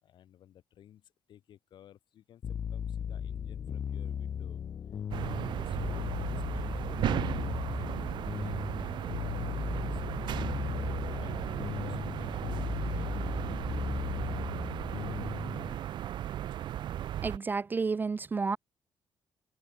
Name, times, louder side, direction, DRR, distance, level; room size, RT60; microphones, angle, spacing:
voice 1, 0.0-4.6 5.2-9.2 9.6-13.2, left 11 dB, 70° left, 5.3 m, -57 dB
sound 1, 2.4-15.8, left 8 dB, 45° left, 0.4 m, -37 dB
sound 2, 5.1-17.4, right 11 dB, 70° right, 1.3 m, -35 dB
voice 2, 17.2-18.6, right 4 dB, 25° right, 0.3 m, -31 dB
cardioid pair, 120°, 8 cm